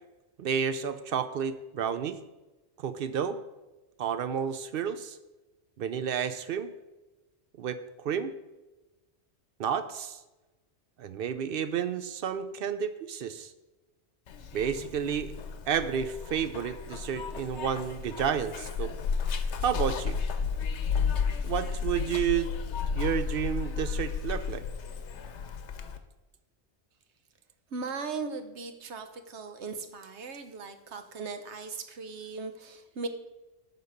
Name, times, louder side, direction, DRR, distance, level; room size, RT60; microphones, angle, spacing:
voice 1, 0.4-2.2 2.8-3.4 4.0-5.2 5.8-6.7 7.6-8.3 9.6-10.2 11.0-13.5 14.5-15.3 15.7-18.9 19.6-20.2 21.4-22.5 22.9-24.6, right 8 dB, 60° right, 11 dB, 0.7 m, -31 dB
Zipper (clothing), 14.3-26.0, left 6 dB, 85° left, 1.0 m, -33 dB
voice 2, 27.7-33.1, right 4 dB, 80° right, 8 dB, 1.1 m, -38 dB
10.5 x 4.1 x 6.5 m, 1.1 s
omnidirectional pair, 1.1 m